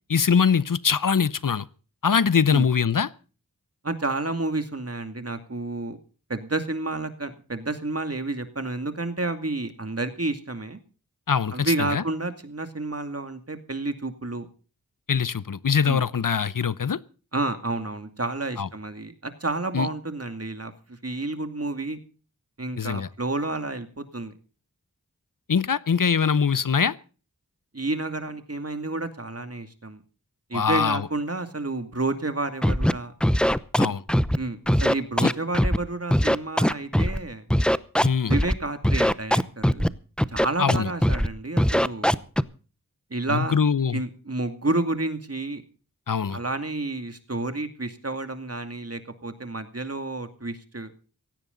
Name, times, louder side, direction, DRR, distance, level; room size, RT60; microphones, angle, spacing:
voice 1, 0.1-1.7 2.0-3.1 11.3-12.0 15.1-17.0 18.6-18.7 19.7-19.9 22.8-23.1 25.5-26.9 30.5-31.0 33.8-34.0 35.2-35.3 38.0-38.3 40.6-40.9 43.3-44.0 46.1-46.4, left 6 dB, 70° left, 0.8 m, -22 dB
voice 2, 3.8-6.0 6.3-10.8 11.5-14.5 15.8-16.0 17.3-22.0 22.6-24.3 27.7-30.0 30.5-33.1 34.4-37.4 38.3-39.9 40.3-42.2 43.1-43.6 43.9-45.6 46.3-50.9, right 2 dB, 45° right, 2.4 m, -30 dB
Scratching (performance technique), 32.6-32.9 33.2-34.4 34.7-35.8 36.1-37.2 37.5-38.5 38.8-39.9 40.2-40.8 41.0-41.3 41.6-42.4, equal, 5° left, 0.7 m, -20 dB
16.5 x 16.5 x 3.9 m
wide cardioid pair, 50°, 34 cm